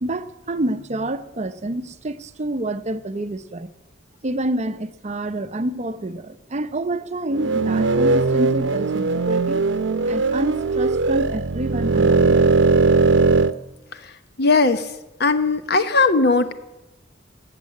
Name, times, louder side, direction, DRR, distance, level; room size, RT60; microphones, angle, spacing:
voice 1, 0.0-3.7 4.2-9.7 10.1-12.5, right 1 dB, 40° right, 0.7 m, -27 dB
sound 1, 7.3-13.5, right 3 dB, 85° right, 0.7 m, -19 dB
voice 2, 14.4-14.9 15.2-16.5, left 3 dB, 60° left, 1.0 m, -18 dB
18.5 x 7.4 x 9.6 m
head